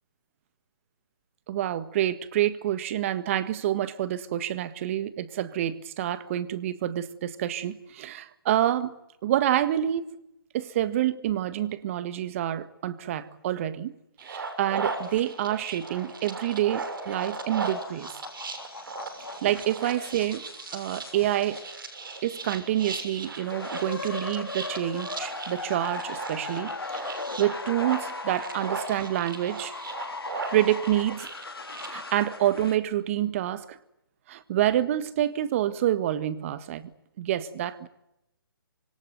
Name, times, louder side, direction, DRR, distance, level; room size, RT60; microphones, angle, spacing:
voice 1, 1.5-9.0 9.2-10.1 10.5-13.9 14.3-18.1 19.4-20.4 20.7-21.6 22.2-29.7 30.5-31.3 31.9-33.8 34.3-36.9 37.2-37.9, right 12 dB, 35° right, 14 dB, 1.7 m, -27 dB
sound 1, 14.2-31.9, right 4 dB, 65° right, 6.6 m, -37 dB
sound 2, 17.5-22.6 23.1-32.8, left 3 dB, 90° left, 3.6 m, -39 dB
26.0 x 21.0 x 9.4 m, 0.85 s
hypercardioid pair, 150°, 12 cm